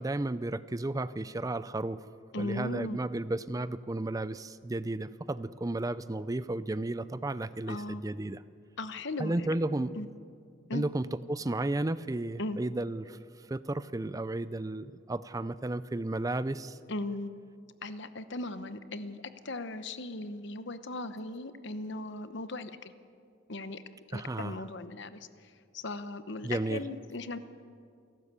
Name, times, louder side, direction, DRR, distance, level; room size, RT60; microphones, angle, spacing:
voice 1, 0.0-2.0 2.4-8.4 9.2-10.0 10.7-16.8 24.1-24.6 26.4-26.8, right 2 dB, 15° right, 15 dB, 0.4 m, -33 dB
voice 2, 2.3-3.0 7.7-8.0 8.8-9.5 10.0-10.1 10.7-10.8 12.4-12.6 16.9-17.3 17.8-22.9 23.5-23.8 24.1-27.4, left 2 dB, 60° left, 11 dB, 1.0 m, -38 dB
28.5 x 12.5 x 8.2 m, 2.3 s
head